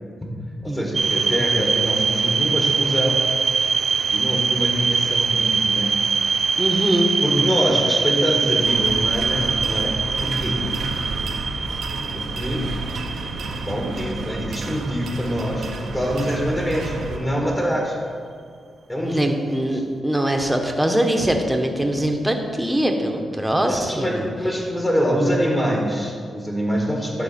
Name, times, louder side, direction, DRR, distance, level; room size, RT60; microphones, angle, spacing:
voice 1, 0.6-3.2 4.1-5.9 7.2-9.9 10.2-10.7 12.1-12.7 13.6-18.0 18.9-19.8 23.5-27.2, equal, 25° left, -1 dB, 1.8 m, -25 dB
sound 1, 0.9-15.9, right 5 dB, 55° right, 0.3 m, -23 dB
voice 2, 6.6-7.1 19.0-24.3, right 1 dB, 10° right, 4 dB, 1.1 m, -22 dB
sound 2, 8.6-17.2, right 3 dB, 75° right, 0.9 m, -31 dB
11.5 x 4.1 x 4.4 m, 2.1 s
supercardioid pair, 45°, 0 cm